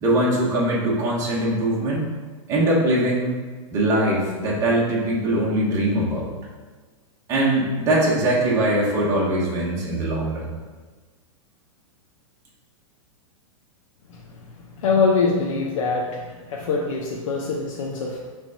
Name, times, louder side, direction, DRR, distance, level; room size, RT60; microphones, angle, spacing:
voice 1, 0.0-2.1 2.5-3.4 3.7-6.3 7.3-10.5, right 1 dB, 15° right, -5 dB, 1.2 m, -21 dB
voice 2, 14.8-18.3, left 4 dB, 60° left, -2 dB, 0.8 m, -23 dB
6.0 x 3.5 x 5.5 m, 1.4 s
supercardioid pair, 175°, 18 cm